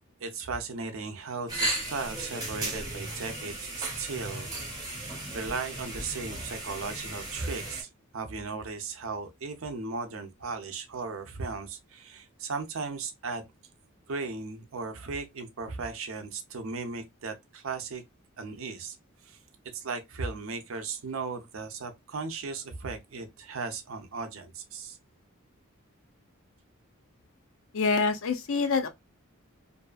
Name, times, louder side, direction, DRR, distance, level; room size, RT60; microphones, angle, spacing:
voice 1, 0.2-4.5 5.3-7.9 8.1-13.4 14.1-18.0 18.4-19.0 19.3-19.4 19.7-25.0, right 4 dB, 65° right, 0.6 m, -36 dB
sound 1, 1.5-7.8, right 1 dB, 15° right, 0.8 m, -35 dB
voice 2, 27.7-28.9, left 4 dB, 65° left, 0.5 m, -26 dB
2.6 x 2.4 x 2.2 m
head